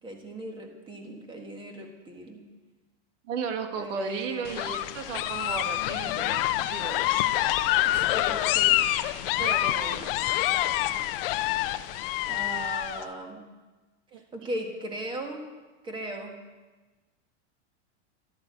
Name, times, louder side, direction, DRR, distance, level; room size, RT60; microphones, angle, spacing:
voice 1, 0.0-2.4 3.8-4.8 7.9-8.8 12.3-13.4 14.3-15.4 15.8-16.3, right 1 dB, 15° right, 3 dB, 1.7 m, -38 dB
voice 2, 3.3-7.1 9.2-10.1 14.1-14.2, right 5 dB, 90° right, 6 dB, 1.9 m, -35 dB
sound 1, 4.4-13.0, left 14 dB, 50° left, 0.7 m, -26 dB
13.0 x 8.6 x 8.2 m, 1.2 s
supercardioid pair, 165°, 36 cm